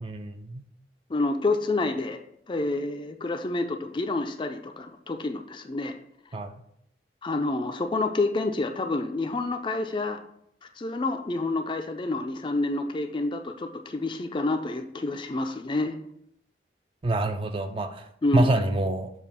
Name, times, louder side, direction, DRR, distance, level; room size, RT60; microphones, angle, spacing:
voice 1, 0.0-0.6 6.3-6.6 17.0-18.1 18.3-19.1, right 2 dB, 30° right, 7 dB, 0.4 m, -26 dB
voice 2, 1.1-2.2 2.5-6.0 7.2-10.2 10.8-16.0 18.2-18.5, left 2 dB, 30° left, 6 dB, 0.4 m, -28 dB
7.1 x 2.4 x 5.4 m, 0.72 s
head